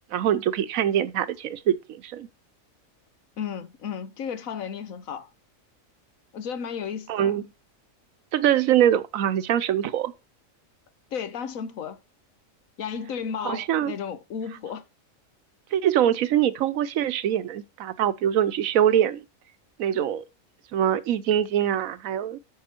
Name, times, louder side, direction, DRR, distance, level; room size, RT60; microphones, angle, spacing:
voice 1, 0.1-2.3 7.1-7.4 8.3-10.1 13.4-13.9 15.7-19.2 19.8-20.2 20.7-22.4, right 10 dB, 85° right, 1.1 m, -23 dB
voice 2, 3.4-5.3 6.3-7.4 11.1-12.0 12.8-14.8, left 7 dB, 80° left, 1.4 m, -33 dB
8.6 x 5.5 x 4.4 m
omnidirectional pair, 1.4 m